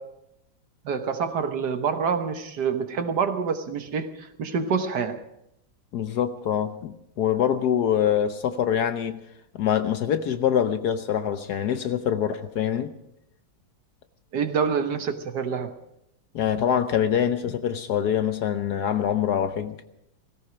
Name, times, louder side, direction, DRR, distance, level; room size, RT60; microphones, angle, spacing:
voice 1, 0.8-5.2 14.3-15.8, right 6 dB, 60° right, 1.6 m, -27 dB
voice 2, 5.9-9.2 9.5-12.9 16.3-19.8, left 9 dB, 65° left, 1.2 m, -24 dB
17.5 x 16.5 x 5.0 m
omnidirectional pair, 2.1 m